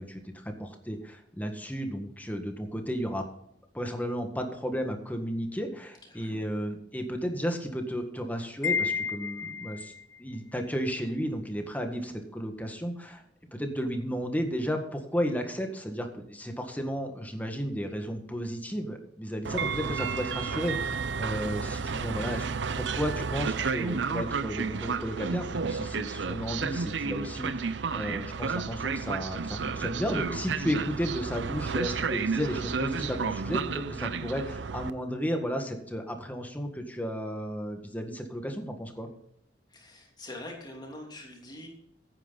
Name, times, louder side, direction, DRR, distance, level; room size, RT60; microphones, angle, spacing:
voice 1, 0.0-3.3 3.7-9.9 10.2-13.2 13.5-39.1, equal, 10° left, 4 dB, 1.7 m, -33 dB
voice 2, 6.1-6.4 39.7-41.7, left 1 dB, 25° left, 0 dB, 3.0 m, -44 dB
Wind chime, 8.6-10.0, left 6 dB, 80° left, 1.3 m, -31 dB
Train, 19.4-34.9, right 5 dB, 80° right, 0.6 m, -32 dB
15.5 x 9.5 x 4.0 m, 0.72 s
head